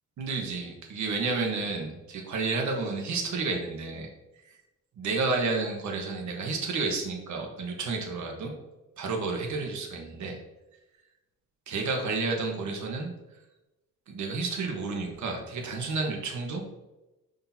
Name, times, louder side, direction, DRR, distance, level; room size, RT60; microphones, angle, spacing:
voice 1, 0.2-4.1 4.5-4.6 5.0-8.5 9.0-10.4 11.7-13.1 14.1-16.6, right 3 dB, 65° right, 1 dB, 1.3 m, -31 dB
6.6 x 5.9 x 2.8 m, 1.0 s
cardioid pair, 110°, 32 cm